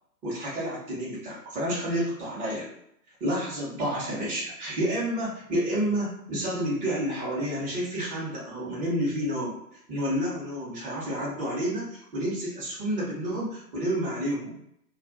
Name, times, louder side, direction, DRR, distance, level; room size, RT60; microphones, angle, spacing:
voice 1, 0.2-2.7 3.2-9.6 9.9-14.6, equal, 15° right, -7 dB, 0.9 m, -30 dB
2.4 x 2.4 x 2.5 m, 0.72 s
figure-of-eight pair, 120°, 50 cm